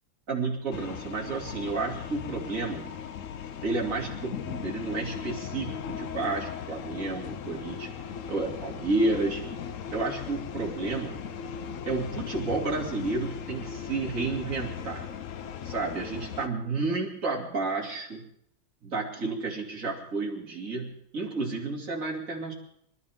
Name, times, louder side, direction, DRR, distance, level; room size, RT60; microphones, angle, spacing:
voice 1, 0.3-2.9 3.6-7.9 8.3-9.4 9.9-11.2 11.9-15.1 15.6-18.3 18.8-22.5, right 3 dB, 40° right, -2 dB, 3.1 m, -31 dB
sound 1, 0.7-16.5, left 7 dB, 65° left, 0.7 m, -38 dB
25.5 x 12.5 x 3.6 m, 0.70 s
omnidirectional pair, 2.2 m